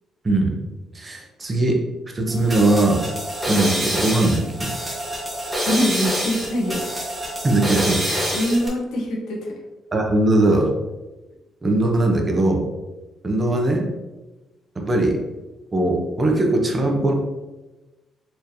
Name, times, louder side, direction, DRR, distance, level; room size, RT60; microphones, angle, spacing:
voice 1, 0.2-0.6 0.9-1.8 2.1-3.1 3.5-4.7 7.4-8.0 9.9-10.7 11.6-12.7 13.2-13.9 14.8-15.2 15.7-17.1, right 2 dB, 30° right, 2 dB, 0.8 m, -20 dB
sound 1, 2.3-8.7, equal, 15° right, 1.2 m, -26 dB
voice 2, 5.7-6.8 8.0-9.5, equal, 80° left, -1 dB, 1.0 m, -24 dB
4.4 x 3.2 x 2.8 m, 1.1 s
cardioid pair, 90°, 0 cm